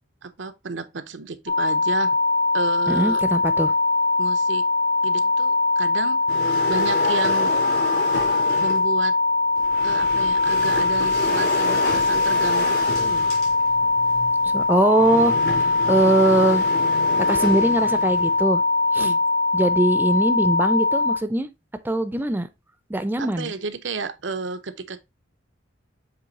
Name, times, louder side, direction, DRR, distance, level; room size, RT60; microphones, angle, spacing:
voice 1, 0.2-2.2 2.5-3.2 4.2-4.6 5.0-6.2 6.7-7.6 8.6-9.2 9.8-13.3 19.0-19.2 23.2-25.0, right 4 dB, 85° right, 0.7 m, -31 dB
sound 1, 1.5-21.2, left 3 dB, 45° left, 1.4 m, -21 dB
voice 2, 2.9-3.7 14.4-16.6 17.2-18.6 18.9-19.1 19.5-21.5 21.8-22.5 22.9-23.5, right 1 dB, 10° right, 0.5 m, -21 dB
sound 2, 6.3-8.9 9.6-18.4, left 2 dB, 60° left, 3.7 m, -30 dB
7.8 x 3.2 x 4.0 m
head